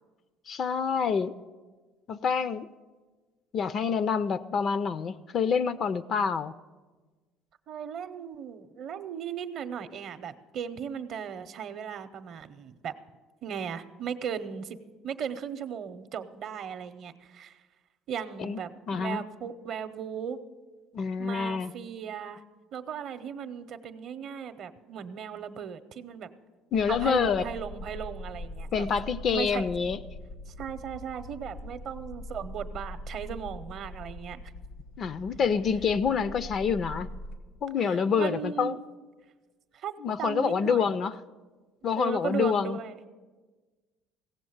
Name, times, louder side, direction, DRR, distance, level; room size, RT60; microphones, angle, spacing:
voice 1, 0.5-1.4 2.1-2.7 3.5-6.5 18.4-18.6 18.9-19.2 20.9-21.7 26.7-27.5 28.7-30.0 35.0-37.1 37.6-38.8 40.0-41.2 41.8-42.8, left 6 dB, 40° left, 15 dB, 0.4 m, -27 dB
voice 2, 7.7-12.9 13.4-14.8 15.0-17.6 18.1-20.4 21.2-22.4 22.7-26.3 26.9-28.9 29.3-29.6 30.5-34.4 37.8-38.8 39.7-40.9 42.0-43.0, right 8 dB, 50° right, 11 dB, 0.6 m, -37 dB
sound 1, 26.7-37.4, left 1 dB, 90° left, 1.1 m, -42 dB
16.5 x 7.2 x 7.8 m, 1.3 s
cardioid pair, 130°, 0 cm